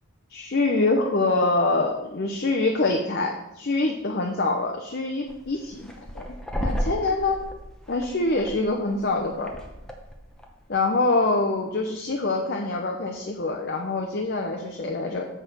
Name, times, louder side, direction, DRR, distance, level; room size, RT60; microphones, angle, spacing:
voice 1, 0.3-6.3 6.6-7.4 7.9-9.5 10.7-15.3, left 2 dB, 45° left, 2 dB, 0.7 m, -25 dB
sound 1, 5.3-10.6, equal, 5° left, 0.8 m, -34 dB
7.2 x 4.2 x 6.6 m, 0.92 s
head